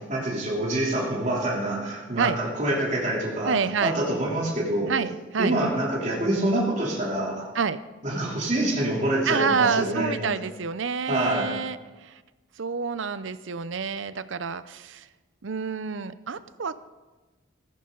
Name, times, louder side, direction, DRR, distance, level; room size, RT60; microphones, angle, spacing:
voice 1, 0.1-3.5 3.8-4.9 5.4-7.5 8.0-10.3 11.1-11.5, right 1 dB, 35° right, -4 dB, 3.2 m, -26 dB
voice 2, 3.4-4.0 4.9-5.6 7.5-7.8 9.3-12.2 12.6-15.1 15.4-16.8, right 5 dB, 75° right, 14 dB, 0.6 m, -28 dB
15.5 x 14.0 x 3.9 m, 1.2 s
head